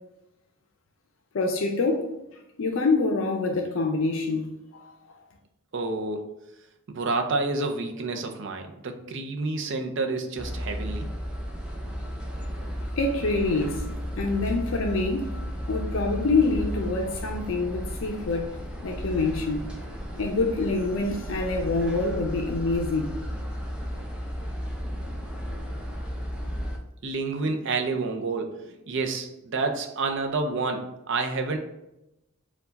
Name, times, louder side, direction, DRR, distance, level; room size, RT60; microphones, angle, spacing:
voice 1, 1.3-2.1 2.6-4.9 13.0-13.8 14.2-18.5 18.8-19.7 20.1-23.2, left 3 dB, 60° left, 0.5 m, -26 dB
voice 2, 5.7-6.4 6.9-11.1 27.0-31.6, right 3 dB, 55° right, 0.5 m, -29 dB
sound 1, 10.4-26.8, equal, 5° right, 0.5 m, -34 dB
4.5 x 2.3 x 4.0 m
head